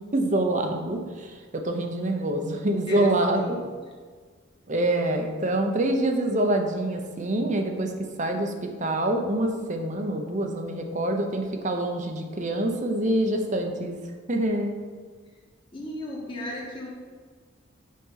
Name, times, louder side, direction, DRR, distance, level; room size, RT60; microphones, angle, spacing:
voice 1, 0.1-3.6 4.7-7.9 8.2-14.0 14.3-14.7, right 1 dB, 35° right, 4 dB, 0.9 m, -26 dB
voice 2, 2.9-3.6 15.7-16.9, equal, 25° left, -4 dB, 1.6 m, -35 dB
8.5 x 5.2 x 5.7 m, 1.5 s
head